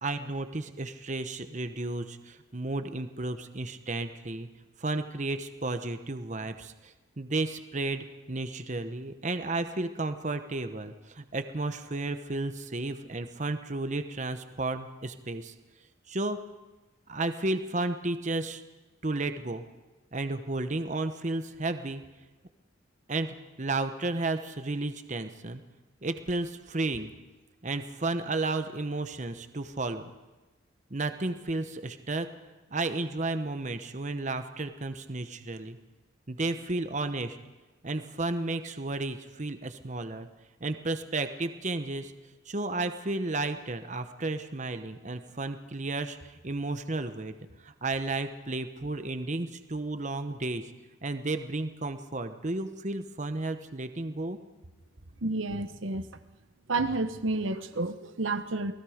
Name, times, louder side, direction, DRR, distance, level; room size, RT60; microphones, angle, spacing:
voice 1, 0.0-4.5 4.8-15.5 16.1-16.4 17.1-18.6 19.0-19.6 20.1-22.0 23.1-25.6 26.0-27.1 27.6-30.1 30.9-32.3 32.7-35.8 36.3-37.4 37.8-40.3 40.6-42.1 42.5-47.3 47.6-50.7 51.0-54.4, right 2 dB, 40° right, 9 dB, 1.0 m, -33 dB
voice 2, 55.2-56.1 56.7-58.7, right 2 dB, 80° right, 10 dB, 1.0 m, -30 dB
28.5 x 19.0 x 5.1 m, 1.2 s
head